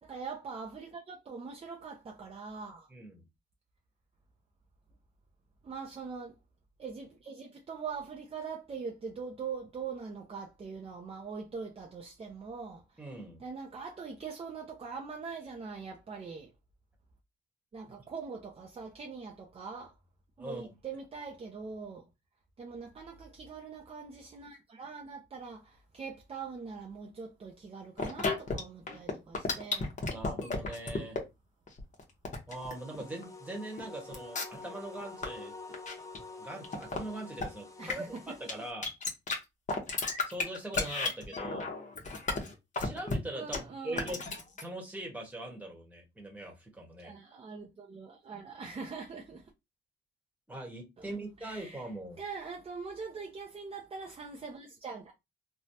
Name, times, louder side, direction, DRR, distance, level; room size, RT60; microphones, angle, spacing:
voice 1, 0.0-2.9 5.6-6.3 6.8-13.1 13.4-16.5 17.7-19.9 20.4-22.1 22.6-29.9 37.8-38.4 43.4-44.2 47.0-49.5 51.0-51.9 52.2-55.1, right 5 dB, 30° right, 0.6 m, -42 dB
voice 2, 2.9-3.2 13.0-13.4 20.4-20.7 30.1-31.2 32.5-35.5 36.4-38.9 40.3-41.7 42.8-44.2 44.6-47.1 50.5-52.2, right 1 dB, 5° right, 1.3 m, -41 dB
sound 1, 28.0-28.6 28.9-31.2 31.7-33.2 33.8-33.9 34.1-34.7 34.9-35.3 35.7-36.2 36.6-37.0 37.4-37.5 37.9-38.2 38.5-38.6 38.8-39.3 39.7-43.1 43.5-43.6 44.0-44.6, left 4 dB, 40° left, 1.1 m, -33 dB
sound 2, 32.5-38.7, left 3 dB, 15° left, 0.6 m, -48 dB
3.1 x 2.3 x 2.7 m
cardioid pair, 90°, 20 cm